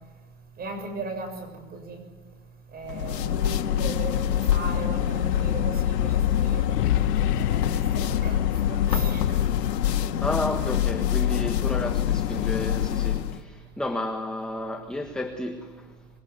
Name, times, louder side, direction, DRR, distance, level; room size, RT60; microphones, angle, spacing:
voice 1, 0.6-2.1 2.7-7.6 7.9-8.4 8.7-9.4, right 3 dB, 20° right, 7 dB, 6.9 m, -37 dB
sound 1, 2.9-13.4, left 11 dB, 85° left, 2.0 m, -25 dB
sound 2, 3.4-11.4, left 13 dB, 70° left, 1.3 m, -34 dB
voice 2, 9.8-16.0, left 1 dB, ahead, 4 dB, 1.5 m, -32 dB
26.5 x 21.5 x 9.6 m, 1.3 s
supercardioid pair, 150°, 48 cm